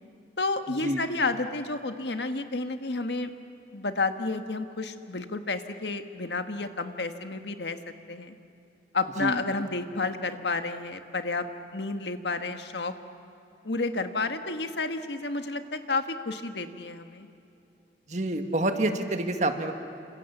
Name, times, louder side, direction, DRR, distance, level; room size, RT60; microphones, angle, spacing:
voice 1, 0.4-3.3 3.7-7.8 8.1-8.3 8.9-11.5 11.7-12.9 13.6-17.3, left 3 dB, 75° left, 8 dB, 1.5 m, -31 dB
voice 2, 18.1-19.7, right 1 dB, 40° right, 6 dB, 1.7 m, -27 dB
29.0 x 26.5 x 7.3 m, 2.7 s
head